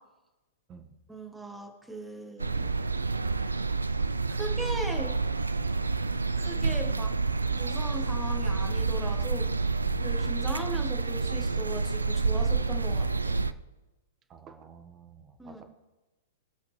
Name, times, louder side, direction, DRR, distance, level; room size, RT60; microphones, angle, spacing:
voice 1, 1.1-3.1 4.3-5.1 6.4-7.1 7.5-9.5 10.0-13.4 15.4-15.6, right 1 dB, 5° right, 3 dB, 1.9 m, -39 dB
sound 1, 2.4-13.5, right 4 dB, 80° right, 0.5 m, -28 dB
voice 2, 14.3-15.6, right 6 dB, 25° right, 7 dB, 1.4 m, -51 dB
22.5 x 7.9 x 3.4 m, 1.1 s
figure-of-eight pair, 105°, 0 cm